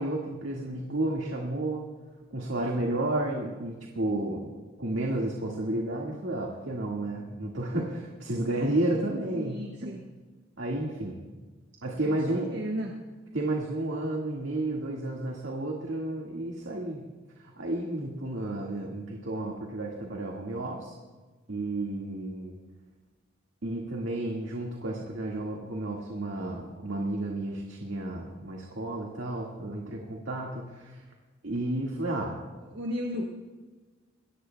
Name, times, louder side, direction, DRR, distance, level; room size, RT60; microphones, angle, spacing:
voice 1, 0.0-1.9 2.3-4.5 4.8-9.9 10.6-11.2 11.8-12.5 13.3-17.1 17.4-21.0 21.5-22.5 23.6-31.0 31.4-32.3, right 1 dB, 90° right, -1 dB, 1.8 m, -32 dB
voice 2, 9.3-10.0 12.0-12.9 32.7-33.2, equal, 60° right, -1 dB, 1.4 m, -34 dB
22.0 x 18.0 x 2.3 m, 1.3 s
head